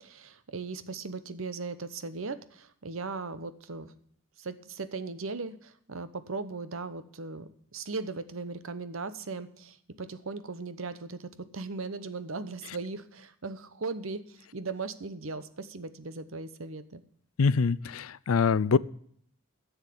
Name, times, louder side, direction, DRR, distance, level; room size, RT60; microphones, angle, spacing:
voice 1, 0.0-3.9 4.4-17.0, right 3 dB, 70° right, 13 dB, 0.9 m, -38 dB
voice 2, 17.4-18.8, left 5 dB, 85° left, 20 dB, 0.5 m, -24 dB
10.5 x 7.2 x 8.5 m, 0.63 s
head